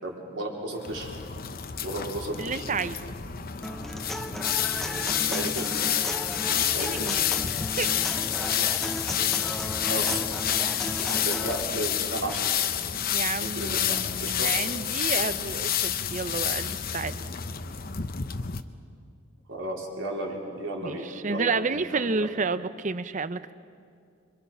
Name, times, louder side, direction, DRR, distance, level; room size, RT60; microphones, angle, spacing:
voice 1, 0.0-1.1 1.8-2.7 5.2-5.7 6.5-7.1 9.6-10.2 11.0-12.6 13.4-14.5 19.5-22.3, right 1 dB, 70° right, -2 dB, 4.3 m, -34 dB
sound 1, 0.8-18.6, left 9 dB, 45° left, 0.8 m, -29 dB
voice 2, 2.4-3.0 6.5-7.3 7.8-7.9 13.1-17.2 20.8-23.5, right 4 dB, 40° right, 13 dB, 0.6 m, -31 dB
Human voice / Acoustic guitar, 3.6-11.6, equal, ahead, 0.7 m, -35 dB
27.0 x 23.5 x 5.7 m, 2.3 s
head